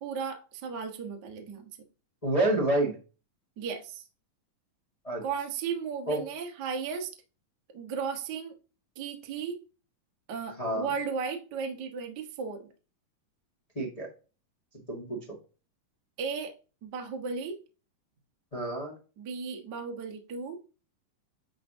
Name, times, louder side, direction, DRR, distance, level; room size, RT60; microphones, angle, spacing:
voice 1, 0.0-1.7 3.6-4.0 5.2-7.1 7.7-8.6 9.0-9.6 10.3-12.7 16.2-16.5 16.8-17.6 19.2-20.6, right 6 dB, 75° right, 4 dB, 0.9 m, -35 dB
voice 2, 2.2-3.0 5.0-5.2 6.1-6.2 10.6-10.9 13.7-14.1 14.9-15.2 18.5-19.0, right 1 dB, 65° left, -2 dB, 0.3 m, -28 dB
9.8 x 3.5 x 2.7 m, 0.33 s
omnidirectional pair, 3.9 m